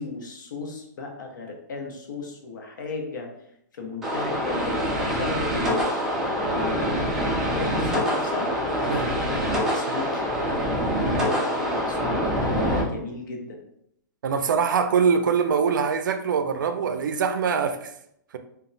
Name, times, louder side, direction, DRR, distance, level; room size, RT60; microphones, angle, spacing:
voice 1, 0.0-3.3 3.7-5.9 6.4-8.5 9.3-10.2 10.9-13.6, left 3 dB, 80° left, 2 dB, 0.7 m, -35 dB
sound 1, 4.0-12.8, equal, 5° right, 0.4 m, -25 dB
voice 2, 14.2-17.9, right 6 dB, 80° right, 8 dB, 0.4 m, -23 dB
2.2 x 2.0 x 3.8 m, 0.75 s
hypercardioid pair, 165°, 10 cm